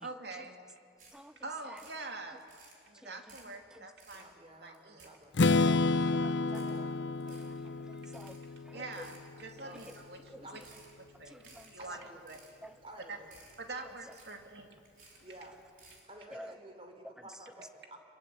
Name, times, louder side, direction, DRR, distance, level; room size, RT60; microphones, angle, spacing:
voice 1, 0.0-0.6 1.4-2.4 2.9-4.3 4.6-5.1 8.7-10.8 11.2-11.4 11.7-12.4 13.0-13.2 13.6-14.8, right 3 dB, 60° right, 4 dB, 2.6 m, -45 dB
sound 1, 1.0-1.2 1.5-2.0 2.4-2.8 3.1-3.5 3.9-4.3 4.6-5.5 5.8-5.9 6.5-6.8 7.1-7.5 7.9-8.4 8.8-9.2 9.7-10.0 10.5-10.9 11.3-11.7 12.1-12.5 12.9-13.0 13.3-13.6 13.9-14.5 14.8-15.2 15.6-16.1, right 3 dB, 45° right, 4.9 m, -58 dB
voice 2, 4.1-5.3 6.5-6.9 9.6-9.8 10.4-10.5 11.8-12.2 12.8-13.3 15.2-15.6 16.1-18.0, right 1 dB, 30° right, 4 dB, 3.6 m, -51 dB
Strum, 5.3-9.3, left 3 dB, 70° left, 0.7 m, -30 dB
voice 3, 5.7-6.6 7.3-8.4 8.6-9.0 9.9-10.0 10.3-10.5 11.3-11.7 12.6-12.7 16.3-16.5 17.0-17.3, equal, 5° right, 11 dB, 0.7 m, -50 dB
26.5 x 22.5 x 8.4 m, 2.3 s
head